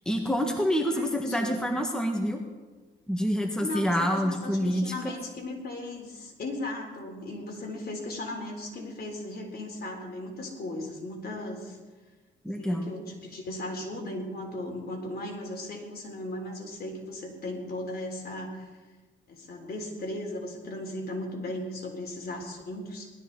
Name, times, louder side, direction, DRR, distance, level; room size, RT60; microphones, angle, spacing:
voice 1, 0.0-2.4 3.1-4.8 12.4-12.9, equal, 5° left, 2 dB, 1.6 m, -27 dB
voice 2, 0.9-1.6 3.6-11.8 12.6-18.7 19.3-23.1, left 1 dB, 50° left, 1 dB, 3.6 m, -37 dB
19.0 x 13.0 x 4.0 m, 1.3 s
cardioid pair, 90°, 20 cm